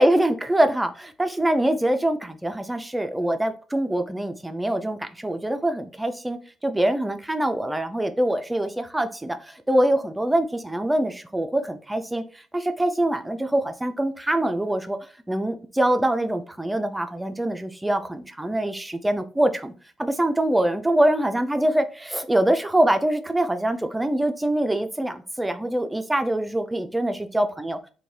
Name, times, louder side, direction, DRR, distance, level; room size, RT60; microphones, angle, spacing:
voice 1, 0.0-12.2 12.5-15.0 15.3-19.7 20.0-27.8, right 1 dB, 10° right, 9 dB, 0.3 m, -24 dB
3.1 x 2.2 x 2.8 m, 0.38 s
cardioid pair, 90°, 0 cm